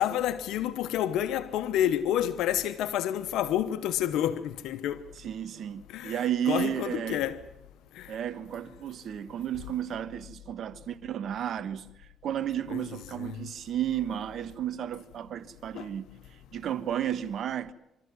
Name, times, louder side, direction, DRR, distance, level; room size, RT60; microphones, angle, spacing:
voice 1, 0.0-5.0 5.9-7.4 8.0-8.1 12.7-12.9 13.2-13.4 15.7-15.9, left 11 dB, 90° left, 0.8 m, -29 dB
voice 2, 5.2-7.2 8.1-17.7, right 10 dB, 65° right, 1.3 m, -33 dB
25.0 x 13.5 x 9.5 m
cardioid pair, 90°, 0 cm